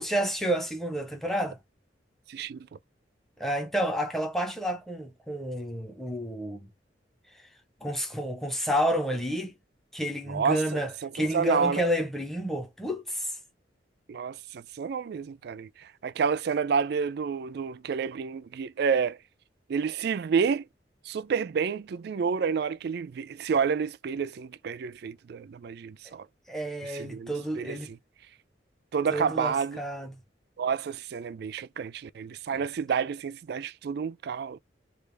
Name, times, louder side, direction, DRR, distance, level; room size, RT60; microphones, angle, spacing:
voice 1, 0.0-1.6 3.4-6.7 7.8-9.5 9.9-13.3 26.5-27.9 29.1-30.2 32.5-32.6, equal, ahead, 0.7 m, -30 dB
voice 2, 2.3-2.7 10.3-11.8 14.1-19.2 19.7-20.7 21.1-26.3 26.8-28.0 28.9-29.8 30.6-34.6, right 6 dB, 60° right, 0.3 m, -29 dB
3.3 x 2.4 x 3.2 m
head